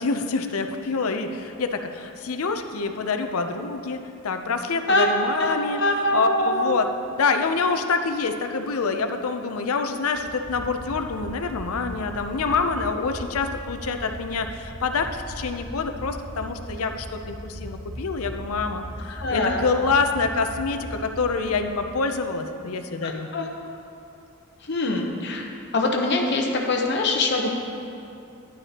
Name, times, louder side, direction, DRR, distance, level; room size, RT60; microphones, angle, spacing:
voice 1, 0.0-6.9 7.2-23.3, left 4 dB, 75° left, 7 dB, 0.6 m, -26 dB
voice 2, 5.4-6.8 19.2-19.6 23.3-23.4 24.7-25.5 25.7-27.5, left 2 dB, 50° left, 1 dB, 0.9 m, -23 dB
sound 1, 10.1-21.9 22.1-22.2 22.5-22.6, equal, 25° right, 1.6 m, -38 dB
10.0 x 9.8 x 2.9 m, 2.6 s
head